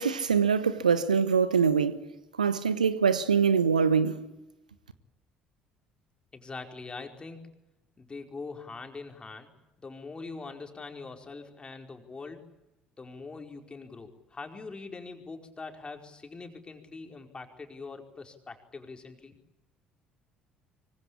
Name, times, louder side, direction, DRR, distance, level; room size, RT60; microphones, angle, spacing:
voice 1, 0.0-2.1 2.4-4.3, right 6 dB, 80° right, 1.2 m, -24 dB
voice 2, 6.3-7.4 8.0-9.5 9.8-12.4 13.0-19.4, left 4 dB, 25° left, 4.9 m, -43 dB
25.5 x 25.0 x 8.7 m
figure-of-eight pair, 55°, 4 cm